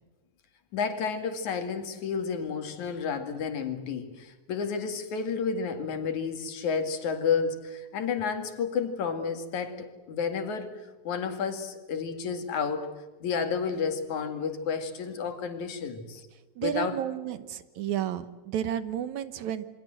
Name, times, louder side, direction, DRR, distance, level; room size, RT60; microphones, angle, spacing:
voice 1, 0.7-12.9 13.2-16.3 16.6-17.0, left 6 dB, 65° left, 7 dB, 3.5 m, -31 dB
voice 2, 16.6-19.6, right 10 dB, 70° right, 13 dB, 2.3 m, -32 dB
28.0 x 23.5 x 7.7 m, 1.2 s
omnidirectional pair, 3.7 m